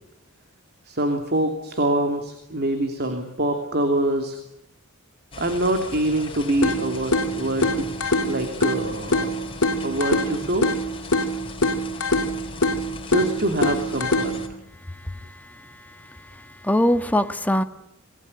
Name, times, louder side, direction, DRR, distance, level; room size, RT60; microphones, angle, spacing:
voice 1, 0.8-4.4 5.4-7.9 8.2-10.7 13.1-14.4, right 1 dB, 50° right, 2.9 m, -25 dB
sound 1, 5.3-14.5, left 3 dB, 25° left, 4.3 m, -39 dB
sound 2, 6.6-14.6, left 1 dB, 75° left, 2.9 m, -25 dB
voice 2, 15.0-15.6 16.6-17.6, left 1 dB, 5° left, 1.5 m, -22 dB
27.5 x 20.5 x 10.0 m
head